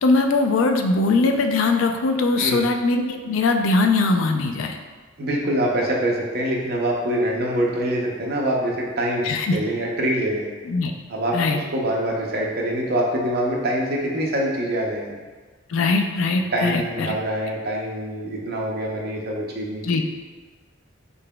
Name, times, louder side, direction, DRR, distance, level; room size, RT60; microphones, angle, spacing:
voice 1, 0.0-4.8 9.2-9.6 10.7-10.9 11.3-11.6 15.7-17.1 19.8-20.0, left 3 dB, 75° left, 5 dB, 0.4 m, -21 dB
voice 2, 5.2-10.5 11.1-15.2 16.5-20.0, right 1 dB, 50° right, -1 dB, 0.6 m, -25 dB
3.9 x 3.6 x 2.2 m, 1.4 s
head